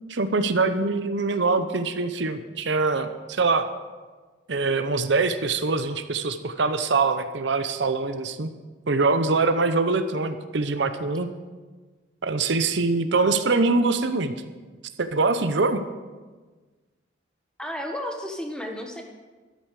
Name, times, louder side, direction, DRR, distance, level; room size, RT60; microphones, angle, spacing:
voice 1, 0.1-3.7 4.5-8.5 8.9-11.3 12.2-14.3 15.0-15.8, right 3 dB, 70° right, 10 dB, 0.7 m, -23 dB
voice 2, 17.6-19.0, equal, 5° left, 2 dB, 1.3 m, -32 dB
12.5 x 12.5 x 4.8 m, 1.3 s
head